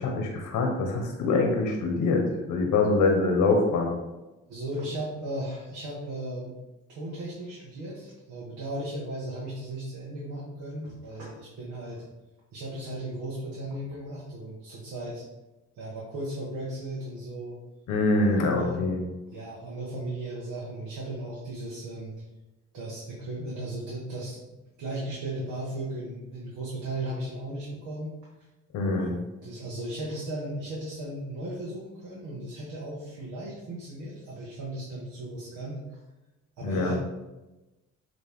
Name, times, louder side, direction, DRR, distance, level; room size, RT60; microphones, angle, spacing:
voice 1, 0.0-3.9 17.9-19.0 28.7-29.1 36.6-36.9, left 3 dB, 85° left, 2 dB, 1.2 m, -24 dB
voice 2, 4.5-6.6 6.9-12.0 12.5-15.2 15.7-17.6 18.2-18.8 19.3-22.2 22.7-28.1 28.9-36.0 36.6-36.9, right 1 dB, 80° right, -5 dB, 1.7 m, -36 dB
8.1 x 3.3 x 3.6 m, 1.0 s
cardioid pair, 90°, 30 cm